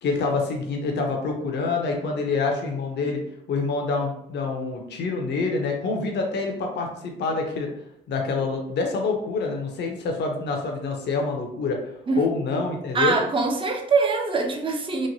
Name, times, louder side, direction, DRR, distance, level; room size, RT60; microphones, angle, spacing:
voice 1, 0.0-3.2 3.5-7.7 8.1-11.8 12.2-13.2, left 4 dB, 60° left, 2 dB, 0.6 m, -26 dB
voice 2, 12.9-15.1, right 4 dB, 25° right, 3 dB, 0.5 m, -23 dB
3.0 x 2.2 x 2.6 m, 0.77 s
cardioid pair, 90°, 20 cm